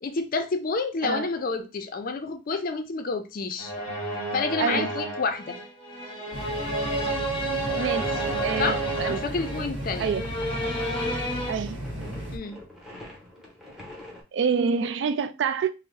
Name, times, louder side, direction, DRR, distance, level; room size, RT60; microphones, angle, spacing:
voice 1, 0.0-3.7 4.1-5.6 8.6-10.1 12.3-12.6, left 4 dB, 50° left, 0.4 m, -29 dB
sound 1, 3.6-11.5, right 1 dB, 30° left, 0.8 m, -30 dB
voice 2, 4.6-4.9 7.8-9.2 10.0-10.2 11.5-11.8 14.3-15.7, right 6 dB, 65° right, 0.3 m, -27 dB
sound 2, 6.3-12.4, equal, 90° right, 0.9 m, -35 dB
sound 3, 8.0-14.2, left 1 dB, ahead, 0.8 m, -46 dB
2.6 x 2.0 x 3.7 m
head